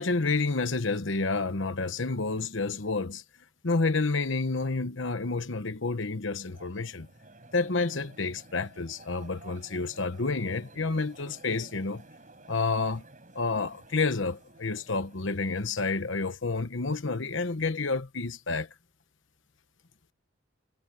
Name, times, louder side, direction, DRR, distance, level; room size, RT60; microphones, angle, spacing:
voice 1, 0.0-3.2 3.6-7.1 7.5-12.0 12.5-13.0 13.3-18.7, left 3 dB, 65° left, 1.1 m, -29 dB
Crowd, 6.3-16.5, right 2 dB, 40° right, 7.5 m, -54 dB
head